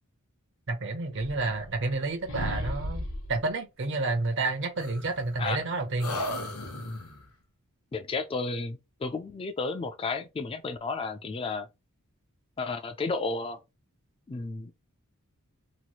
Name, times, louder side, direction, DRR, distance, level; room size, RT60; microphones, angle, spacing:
voice 1, 0.7-6.2, right 3 dB, 55° right, 0.7 m, -30 dB
sound 1, 1.1-2.0 2.3-3.4 4.8-5.6 6.0-7.2, left 1 dB, 70° left, 0.7 m, -35 dB
voice 2, 7.9-11.7 12.6-13.6 14.3-14.7, left 3 dB, 25° left, 0.3 m, -32 dB
3.0 x 2.9 x 2.3 m
head